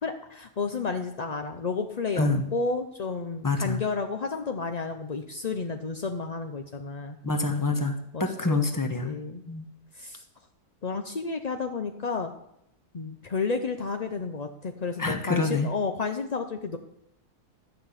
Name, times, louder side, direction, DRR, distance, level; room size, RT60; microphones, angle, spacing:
voice 1, 0.0-7.2 8.1-8.6 9.0-9.4 10.0-10.2 10.8-12.3 12.9-16.8, left 4 dB, 60° left, 5 dB, 0.4 m, -31 dB
voice 2, 2.1-2.5 3.4-3.8 7.2-9.2 9.5-9.7 15.0-15.7, left 3 dB, 15° left, 6 dB, 0.9 m, -27 dB
12.5 x 5.8 x 8.2 m, 0.78 s
omnidirectional pair, 1.7 m